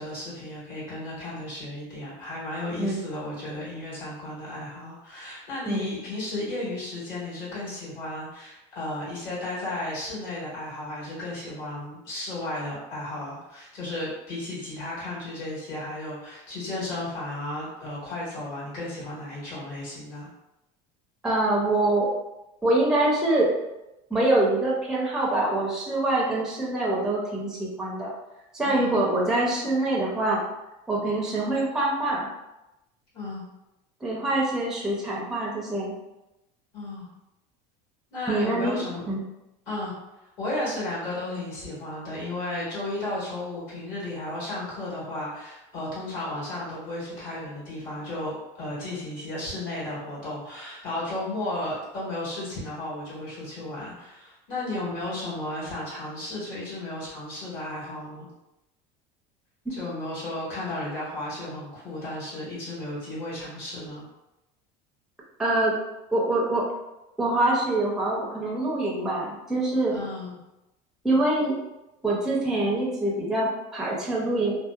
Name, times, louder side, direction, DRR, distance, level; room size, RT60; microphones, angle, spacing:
voice 1, 0.0-20.3 28.6-29.1 33.1-33.5 36.7-37.1 38.1-39.2 39.7-39.9 40.4-58.3 59.7-64.0 69.9-70.4, left 1 dB, 55° left, -8 dB, 1.4 m, -34 dB
voice 2, 21.2-22.1 22.6-23.5 24.1-28.1 28.5-30.4 30.9-32.3 34.0-35.9 38.3-39.2 65.4-65.8 66.1-66.6 67.2-70.0 71.0-71.5 72.0-74.6, right 2 dB, 5° right, -4 dB, 0.4 m, -25 dB
2.7 x 2.1 x 2.3 m, 0.96 s
cardioid pair, 135°, 19 cm